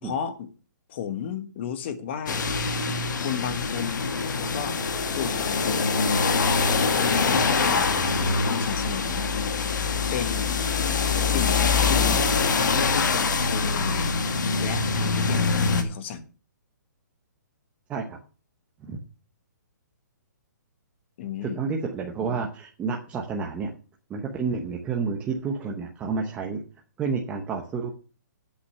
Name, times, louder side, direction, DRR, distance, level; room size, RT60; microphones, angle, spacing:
voice 1, 0.0-0.5 0.9-2.4 3.1-4.1 4.4-4.8 5.1-5.9 6.6-7.9 8.4-9.3 10.1-10.6 11.2-12.3 12.5-14.1 14.6-16.3 21.2-21.6, left 8 dB, 35° left, 1.3 m, -33 dB
sound 1, 2.3-15.8, left 4 dB, 75° left, 1.6 m, -24 dB
voice 2, 21.4-23.7 24.1-26.6 27.0-27.9, right 5 dB, 10° right, 0.9 m, -30 dB
8.3 x 6.5 x 6.8 m
hypercardioid pair, 160°, 10 cm